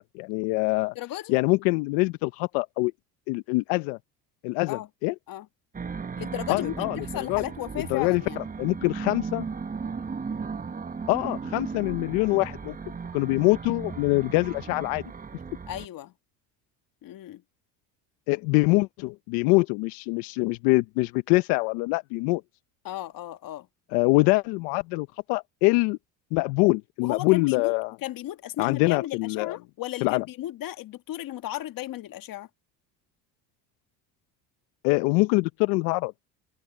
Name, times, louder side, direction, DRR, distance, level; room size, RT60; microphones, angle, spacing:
voice 1, 0.0-0.9 1.3-2.9 3.3-4.0 4.4-5.1 6.5-7.4 7.9-9.4 11.1-12.8 13.1-15.0 18.3-22.4 23.9-26.0 26.3-28.0 28.6-29.6 30.0-30.2 34.8-36.1, left 24 dB, 80° left, 0.8 m, -24 dB
voice 2, 0.9-1.4 4.7-4.9 5.3-5.5 6.1-8.4 15.7-16.1 17.0-17.4 22.8-23.7 27.0-27.7 28.0-32.5, left 13 dB, 55° left, 1.6 m, -35 dB
sound 1, 5.7-15.9, right 5 dB, 20° right, 1.2 m, -36 dB
supercardioid pair, 85°, 40 cm